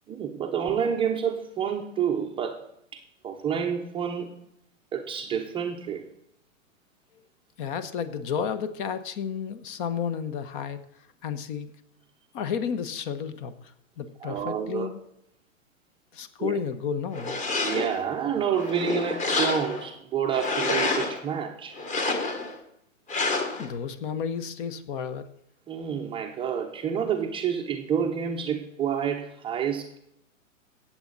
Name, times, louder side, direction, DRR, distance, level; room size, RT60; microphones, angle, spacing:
voice 1, 0.1-4.3 4.9-6.0 14.2-14.9 16.4-16.6 17.6-21.8 25.7-30.0, right 8 dB, 15° right, 3 dB, 0.7 m, -29 dB
voice 2, 7.6-10.8 11.2-11.7 12.3-15.0 16.1-17.4 23.6-25.3, left 7 dB, 40° left, 12 dB, 1.0 m, -32 dB
sound 1, 17.1-18.0 18.5-19.9 20.3-21.2 21.8-22.6 23.1-23.7, left 3 dB, 20° left, 1.5 m, -28 dB
16.5 x 7.5 x 4.0 m, 0.77 s
hypercardioid pair, 125°, 40 cm